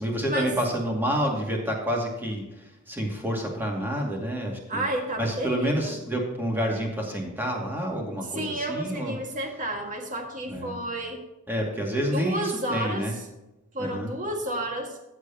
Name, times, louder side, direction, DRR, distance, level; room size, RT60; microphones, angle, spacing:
voice 1, 0.0-4.8 5.2-9.2 10.5-10.8 11.5-13.1 13.8-14.1, equal, 10° right, -1 dB, 2.3 m, -28 dB
voice 2, 4.7-6.0 8.3-11.2 12.1-13.0 13.7-15.0, right 1 dB, 35° right, 2 dB, 1.9 m, -31 dB
14.5 x 8.1 x 2.9 m, 0.98 s
head